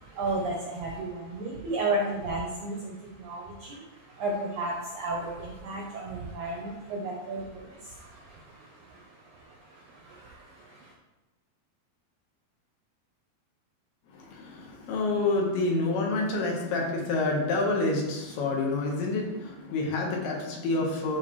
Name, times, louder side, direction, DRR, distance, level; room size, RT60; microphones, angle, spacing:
voice 1, 0.0-10.9, right 2 dB, 80° right, -1 dB, 1.8 m, -34 dB
voice 2, 14.1-21.2, left 2 dB, 80° left, -1 dB, 3.2 m, -28 dB
12.0 x 4.1 x 3.1 m, 1.1 s
omnidirectional pair, 4.6 m